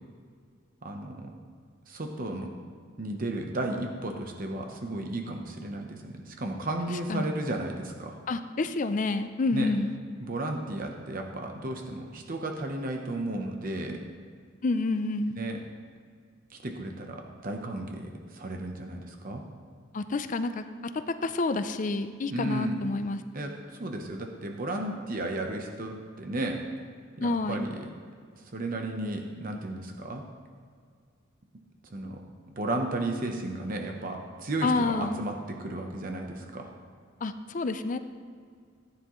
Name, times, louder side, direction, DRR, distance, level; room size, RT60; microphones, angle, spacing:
voice 1, 0.8-1.3 1.9-2.5 3.0-8.2 9.5-9.7 10.2-14.0 15.4-15.6 16.5-19.4 22.3-22.8 23.3-26.6 27.2-27.8 28.4-30.2 31.9-32.2 32.6-36.7, right 2 dB, 45° right, 3 dB, 0.9 m, -34 dB
voice 2, 8.3-10.0 14.6-15.4 19.9-23.2 27.2-27.7 34.6-35.2 37.2-38.0, left 3 dB, 40° left, 10 dB, 0.4 m, -29 dB
15.0 x 9.7 x 3.1 m, 2.1 s
head